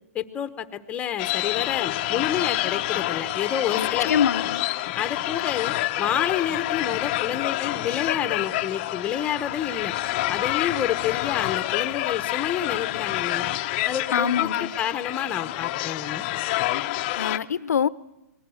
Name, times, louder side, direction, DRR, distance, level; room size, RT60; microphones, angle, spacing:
voice 1, 0.1-4.1 4.9-9.9 10.3-13.5 13.8-16.3, left 9 dB, 15° left, 10 dB, 1.2 m, -29 dB
sound 1, 1.2-17.4, left 16 dB, 35° left, 0.8 m, -27 dB
voice 2, 3.7-4.6 14.1-14.7 17.2-17.9, left 7 dB, 80° left, 18 dB, 0.8 m, -24 dB
26.5 x 20.5 x 6.5 m, 0.91 s
hypercardioid pair, 150°, 9 cm